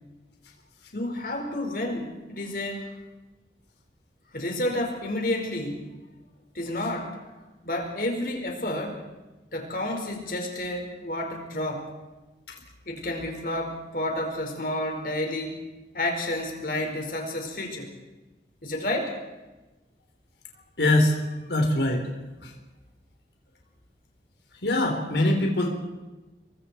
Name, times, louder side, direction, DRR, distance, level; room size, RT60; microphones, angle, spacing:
voice 1, 0.9-2.9 4.3-5.9 6.5-7.2 7.6-9.0 9.5-11.9 12.9-15.6 15.9-17.9 18.6-19.1, left 1 dB, 55° left, 2 dB, 5.0 m, -30 dB
voice 2, 20.8-21.2 21.5-22.0 22.4-22.5 24.6-25.7, left 1 dB, 80° left, 2 dB, 4.0 m, -22 dB
29.5 x 23.0 x 4.5 m, 1.1 s
head